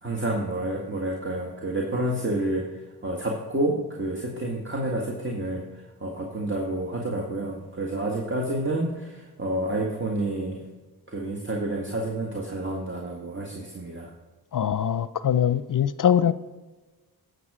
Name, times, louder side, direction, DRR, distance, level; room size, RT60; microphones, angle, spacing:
voice 1, 0.0-10.6 11.1-14.1, right 1 dB, 30° right, 0 dB, 1.8 m, -29 dB
voice 2, 14.5-16.3, left 9 dB, 55° left, 15 dB, 0.5 m, -22 dB
11.0 x 6.9 x 4.9 m, 1.2 s
cardioid pair, 45°, 39 cm